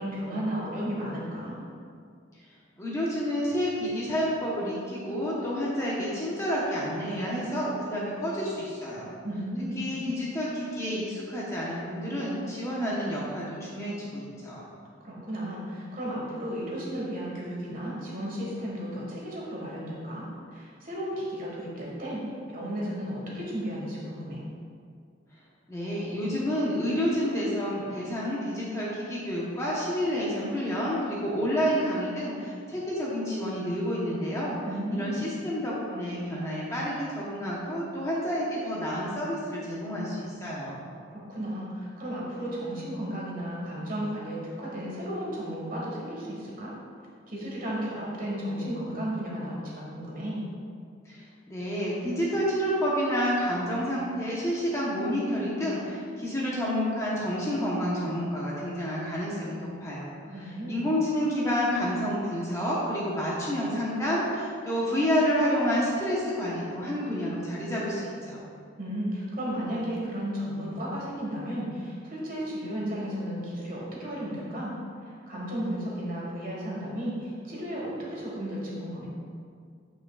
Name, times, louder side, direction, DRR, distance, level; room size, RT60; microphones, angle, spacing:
voice 1, 0.0-1.6 9.2-9.9 15.0-24.4 34.6-35.2 41.1-46.7 47.3-50.4 60.3-60.9 68.8-74.7 75.0-79.1, equal, 45° right, -4 dB, 1.6 m, -34 dB
voice 2, 2.8-9.1 9.8-14.6 25.7-34.5 34.9-40.8 51.0-60.1 60.7-68.4, equal, 15° left, -6 dB, 1.0 m, -29 dB
9.0 x 5.7 x 2.4 m, 2.2 s
head